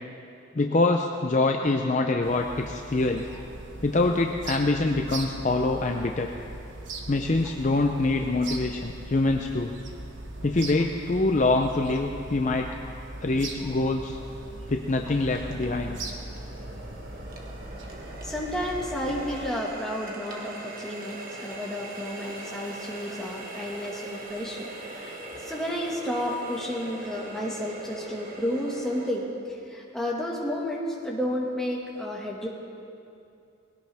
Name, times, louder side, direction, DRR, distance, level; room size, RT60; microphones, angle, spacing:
voice 1, 0.5-3.3 3.8-6.3 7.1-9.7 10.4-12.7 13.2-14.2 14.7-16.0, left 2 dB, 35° left, 3 dB, 0.5 m, -25 dB
sound 1, 2.2-19.5, right 2 dB, 60° right, 1.3 m, -40 dB
Water tap faucet, 13.3-29.1, right 2 dB, 45° right, 1.6 m, -42 dB
voice 2, 18.2-29.2 29.7-32.5, equal, ahead, -4 dB, 1.8 m, -32 dB
20.0 x 17.0 x 3.5 m, 2.6 s
head